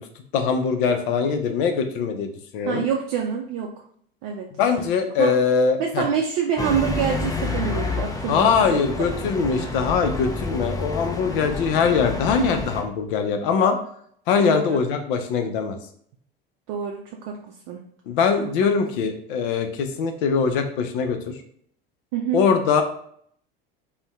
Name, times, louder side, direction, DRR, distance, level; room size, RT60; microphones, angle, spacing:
voice 1, 0.3-2.9 4.6-6.1 8.3-13.8 14.3-15.8 18.1-21.4 22.3-22.8, left 5 dB, 60° left, 6 dB, 0.5 m, -22 dB
voice 2, 2.7-3.7 4.2-4.5 5.2-5.3 5.8-8.8 9.3-9.7 14.4-14.8 16.7-17.4 17.7-17.8 22.1-22.4, right 7 dB, 55° right, 0 dB, 0.5 m, -26 dB
sound 1, 6.6-12.8, left 3 dB, 10° left, 0.5 m, -29 dB
2.6 x 2.1 x 3.3 m, 0.63 s
figure-of-eight pair, 65°, 30 cm